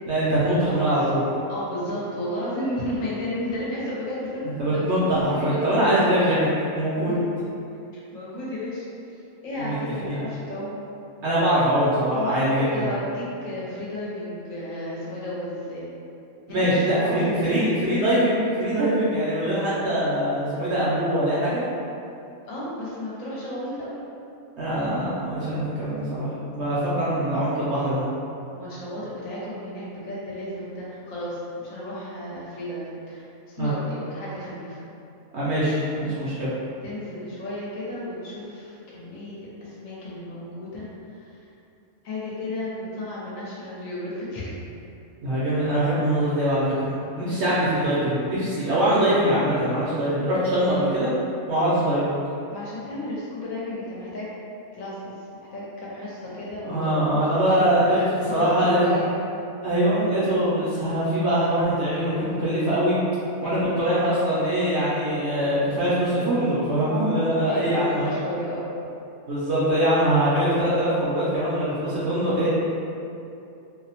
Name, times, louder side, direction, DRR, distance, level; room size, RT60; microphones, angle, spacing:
voice 1, 0.1-1.2 4.6-6.5 6.7-7.2 9.6-9.8 10.0-10.2 11.2-12.8 16.5-21.6 24.6-28.0 33.6-33.7 35.3-36.5 45.2-51.1 51.5-52.1 56.7-58.0 58.3-59.0 59.6-63.0 63.4-68.1 69.3-72.5, right 1 dB, 65° right, -10 dB, 0.7 m, -23 dB
voice 2, 1.5-4.4 4.7-5.7 8.1-10.8 12.1-15.9 16.5-17.6 22.4-24.0 27.2-27.3 28.5-34.9 36.8-40.9 41.2-41.5 42.0-44.5 47.3-47.5 48.6-48.8 52.5-54.3 54.7-55.1 55.4-59.2 63.4-63.8 65.6-65.8 67.1-68.7, left 1 dB, 70° left, -7 dB, 1.0 m, -33 dB
2.7 x 2.0 x 2.7 m, 2.7 s
omnidirectional pair, 1.5 m